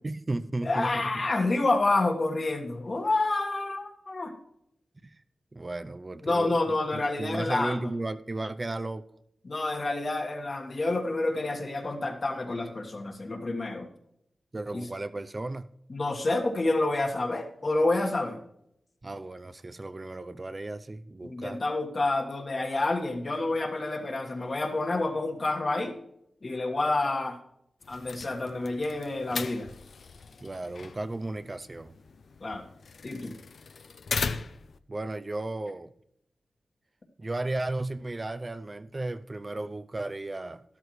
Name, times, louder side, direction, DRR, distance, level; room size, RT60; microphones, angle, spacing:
voice 1, 0.0-1.3 5.0-5.1 5.5-9.1 14.5-15.7 19.0-21.6 30.4-32.0 34.9-35.9 37.2-40.6, right 2 dB, 35° right, 0.5 m, -35 dB
voice 2, 0.6-4.3 6.2-7.9 9.4-13.9 14.7-14.9 15.9-18.4 21.2-26.0 26.4-27.4 27.9-29.7 32.4-32.7 33.0-33.3, left 2 dB, 55° left, 1.6 m, -28 dB
sound 1, 27.8-34.8, left 5 dB, 80° left, 0.5 m, -38 dB
12.5 x 11.5 x 3.2 m
cardioid pair, 50°, 0 cm